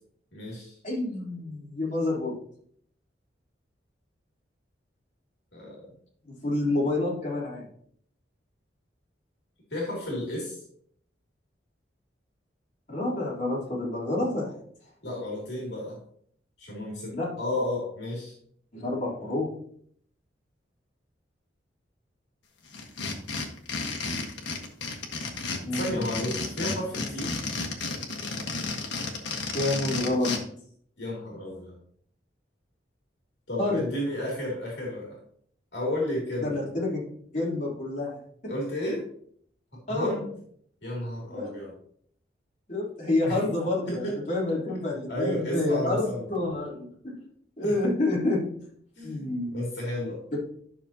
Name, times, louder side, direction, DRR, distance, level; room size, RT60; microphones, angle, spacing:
voice 1, 0.3-0.8 5.5-5.8 9.7-10.6 15.0-16.0 16.6-18.3 25.7-27.3 31.0-31.8 33.5-35.2 35.7-36.6 38.5-39.0 39.7-40.3 40.8-41.7 43.2-43.4 43.9-44.2 45.1-46.3 47.6-47.8 49.0-50.2, left 1 dB, 65° left, -3 dB, 2.8 m, -32 dB
voice 2, 0.8-2.3 6.4-7.6 12.9-14.5 17.1-17.3 18.7-19.5 25.6-26.1 29.5-30.3 33.6-33.8 36.4-37.0 37.3-38.1 38.4-38.5 39.9-40.1 41.3-41.5 42.7-47.1 47.6-48.5 49.0-49.6 50.3-50.4, left 2 dB, 40° left, -6 dB, 3.4 m, -28 dB
sound 1, 22.7-30.4, left 3 dB, 85° left, 1.5 m, -32 dB
12.0 x 6.2 x 2.9 m, 0.63 s
head